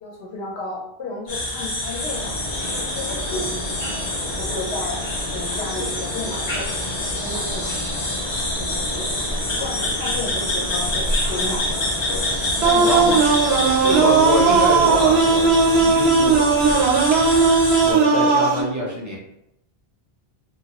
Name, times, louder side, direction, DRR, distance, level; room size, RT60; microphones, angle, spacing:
voice 1, 0.0-2.4 2.8-4.0 4.4-7.7 8.6-9.2 9.5-12.3 12.6-13.2 13.7-13.9 15.8-15.9, left 2 dB, 85° left, -2 dB, 0.9 m, -33 dB
sound 1, 1.3-17.9, left 1 dB, 65° left, 1.2 m, -27 dB
sound 2, 2.1-15.8, left 1 dB, 40° left, 0.7 m, -33 dB
sound 3, 12.6-18.6, right 4 dB, 85° right, 0.8 m, -17 dB
voice 2, 12.8-13.2 13.9-15.4 15.7-16.4 17.8-19.2, equal, 30° right, -3 dB, 0.3 m, -25 dB
2.8 x 2.2 x 2.8 m, 0.78 s
omnidirectional pair, 1.0 m